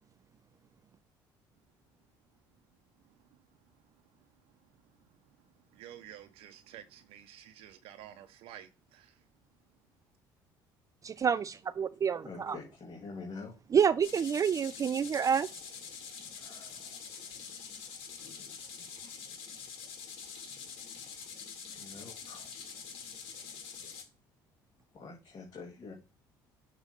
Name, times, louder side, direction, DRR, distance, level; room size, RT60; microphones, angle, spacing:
voice 1, 5.7-9.1 20.2-20.3, right 11 dB, 75° right, 0.6 m, -51 dB
voice 2, 11.0-12.6 13.7-15.5, right 7 dB, 35° right, 0.4 m, -28 dB
voice 3, 12.2-13.5 16.4-16.9 18.3-18.5 21.8-22.5 24.9-25.9, left 4 dB, 45° left, 2.1 m, -46 dB
sound 1, 14.0-24.0, left 6 dB, 70° left, 1.9 m, -45 dB
6.6 x 3.0 x 5.0 m
supercardioid pair, 70°, 10 cm